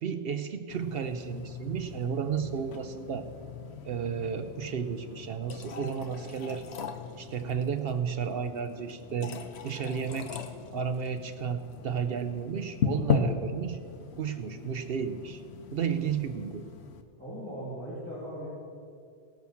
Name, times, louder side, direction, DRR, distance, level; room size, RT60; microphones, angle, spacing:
voice 1, 0.0-3.3 3.9-6.7 7.2-9.4 9.6-10.4 10.7-13.8 14.2-15.4 15.7-16.6, right 7 dB, 65° right, 9 dB, 0.8 m, -33 dB
sound 1, 0.7-17.0, left 6 dB, 70° left, 1.0 m, -37 dB
voice 2, 17.2-18.5, equal, 10° left, -11 dB, 3.5 m, -38 dB
18.0 x 6.0 x 7.0 m, 2.4 s
omnidirectional pair, 1.2 m